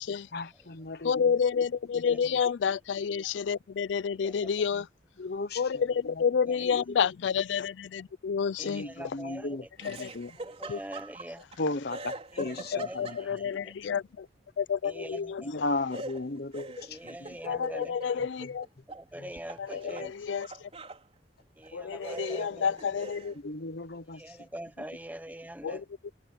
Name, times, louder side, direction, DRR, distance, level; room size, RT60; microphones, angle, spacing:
voice 1, 0.3-1.4 1.9-2.2 5.2-5.6 6.0-6.2 6.6-7.0 7.6-7.7 8.6-10.4 11.6-13.2 13.6-13.7 15.4-17.4 19.2-19.3 23.4-24.4, left 2 dB, 60° left, 1.0 m, -36 dB
voice 2, 1.0-4.9 5.6-8.9 9.8-10.1 10.7-10.8 12.7-14.3 14.6-15.4 17.5-18.7 19.6-20.7 21.7-23.3 25.6-25.8, left 6 dB, 85° left, 0.4 m, -29 dB
voice 3, 8.6-9.7 10.4-11.4 12.3-13.7 14.8-15.5 16.9-18.2 18.9-20.1 21.6-22.7 24.1-25.8, right 1 dB, 10° right, 1.0 m, -44 dB
Laughter, 9.8-11.6 11.9-13.6 15.9-19.0 19.4-21.0 21.6-21.7 22.0-23.4, right 2 dB, 35° right, 4.2 m, -43 dB
head